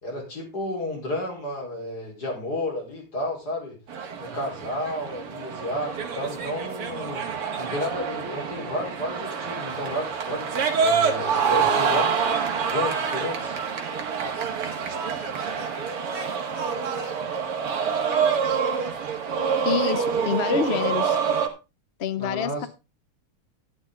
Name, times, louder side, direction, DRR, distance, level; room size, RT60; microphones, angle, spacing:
voice 1, 0.0-3.8 4.2-7.2 7.6-12.3 12.7-13.6 22.2-22.7, left 1 dB, 45° left, 0 dB, 4.8 m, -32 dB
sound 1, 3.9-21.5, right 6 dB, 85° right, 2.7 m, -26 dB
voice 2, 19.6-21.2 22.0-22.7, left 7 dB, 65° left, 14 dB, 0.6 m, -27 dB
12.5 x 10.5 x 3.7 m, 0.28 s
omnidirectional pair, 2.4 m